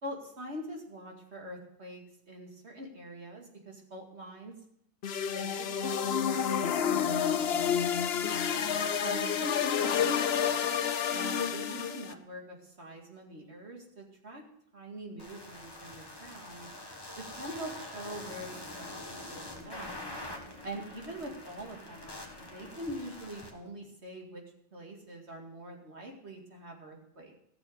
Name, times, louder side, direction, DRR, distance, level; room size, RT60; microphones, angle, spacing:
voice 1, 0.0-4.6 5.3-6.0 6.3-8.6 9.0-10.6 11.1-14.4 14.7-16.7 17.2-20.0 20.6-24.4 24.7-27.4, right 1 dB, 55° right, 1 dB, 2.5 m, -44 dB
sound 1, 5.0-12.1, left 8 dB, 55° left, 0.9 m, -29 dB
sound 2, 15.2-23.5, left 1 dB, 20° left, 1.8 m, -45 dB
14.5 x 6.9 x 6.5 m, 0.74 s
omnidirectional pair, 1.3 m